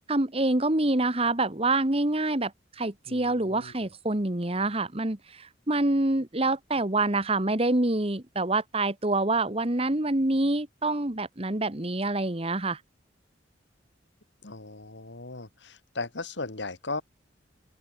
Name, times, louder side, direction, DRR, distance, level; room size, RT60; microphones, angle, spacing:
voice 1, 0.1-2.5 2.8-12.8, right 2 dB, 30° right, 1.5 m, -26 dB
voice 2, 3.1-3.7 14.4-17.0, left 3 dB, 65° left, 2.1 m, -37 dB
open air
head